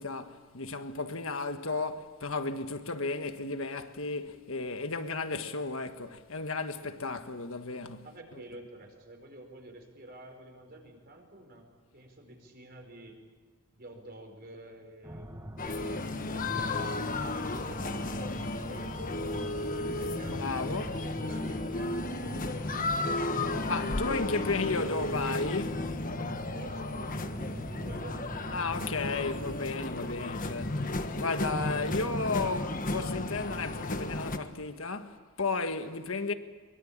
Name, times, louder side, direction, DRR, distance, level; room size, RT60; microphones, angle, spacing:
voice 1, 0.0-8.1 8.3-8.4 20.3-21.0 23.7-25.9 28.5-36.3, left 3 dB, 65° left, 1.6 m, -34 dB
voice 2, 8.0-11.7 11.9-13.2 13.7-22.2 22.5-24.9 26.5-28.9 31.5-32.8, right 1 dB, 45° right, 4.8 m, -50 dB
sound 1, 15.0-28.9, equal, 15° right, 1.4 m, -44 dB
sound 2, 15.6-34.4, left 2 dB, 40° left, 1.3 m, -34 dB
23.5 x 23.0 x 8.8 m
head